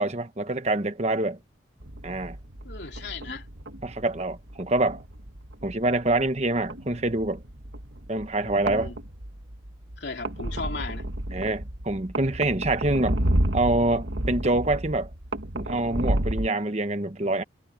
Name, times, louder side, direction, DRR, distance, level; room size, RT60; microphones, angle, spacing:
voice 1, 0.0-1.4 2.0-2.4 3.8-5.0 5.6-7.4 8.1-8.9 11.3-13.2 13.5-15.1 15.5-17.4, right 2 dB, 35° right, 1.1 m, -26 dB
sound 1, 1.8-16.5, right 1 dB, 80° right, 1.9 m, -32 dB
voice 2, 2.6-3.5 8.4-9.0 10.0-11.0, left 3 dB, 65° left, 3.1 m, -36 dB
head